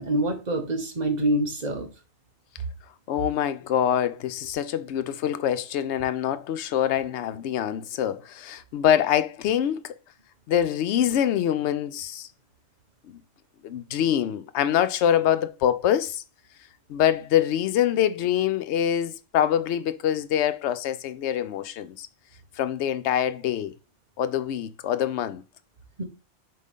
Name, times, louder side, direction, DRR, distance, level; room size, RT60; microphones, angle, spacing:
voice 1, 0.0-1.9 26.0-26.1, right 1 dB, 35° right, 1.3 m, -26 dB
voice 2, 3.1-9.9 10.5-12.3 13.1-13.2 13.6-16.2 16.9-22.1 22.6-23.7 24.2-25.4, left 10 dB, 70° left, 0.9 m, -25 dB
7.4 x 3.9 x 3.6 m
omnidirectional pair, 1.2 m